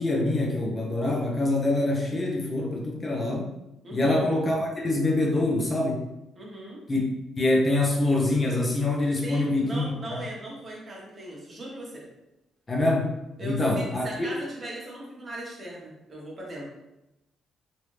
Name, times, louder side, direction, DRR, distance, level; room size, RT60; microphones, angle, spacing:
voice 1, 0.0-3.5 3.9-6.0 6.9-7.0 7.4-10.0 12.7-13.1 13.4-14.3, left 2 dB, 30° left, -1 dB, 0.7 m, -25 dB
voice 2, 3.8-4.2 6.3-6.8 9.2-12.0 13.4-16.7, right 1 dB, 35° right, -3 dB, 1.1 m, -38 dB
3.2 x 2.7 x 3.1 m, 0.92 s
cardioid pair, 90°, 0 cm